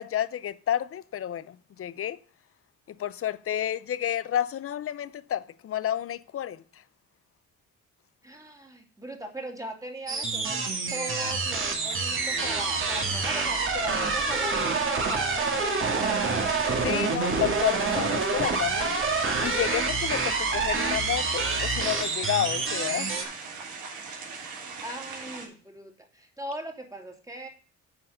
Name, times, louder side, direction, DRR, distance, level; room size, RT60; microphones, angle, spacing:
voice 1, 0.0-2.2 2.9-6.6 16.8-19.0 19.4-23.2, left 11 dB, 50° left, 0.6 m, -30 dB
voice 2, 8.2-16.3 24.8-27.5, right 1 dB, 10° right, 2.5 m, -39 dB
sound 1, 10.1-23.2, right 4 dB, 40° right, 2.3 m, -27 dB
sound 2, 11.4-25.5, right 4 dB, 80° right, 3.1 m, -40 dB
8.7 x 4.7 x 6.5 m
cardioid pair, 90°, 30 cm